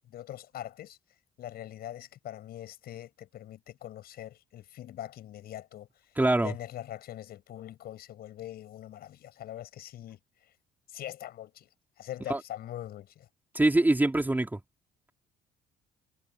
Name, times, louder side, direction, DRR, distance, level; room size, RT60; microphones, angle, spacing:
voice 1, 0.1-1.0 1.4-5.9 6.4-10.2 10.9-11.7 12.0-13.3, left 12 dB, 65° left, 7.5 m, -42 dB
voice 2, 6.2-6.5 12.3-12.4 13.6-14.6, right 2 dB, 10° right, 3.5 m, -24 dB
cardioid pair, 110°, 17 cm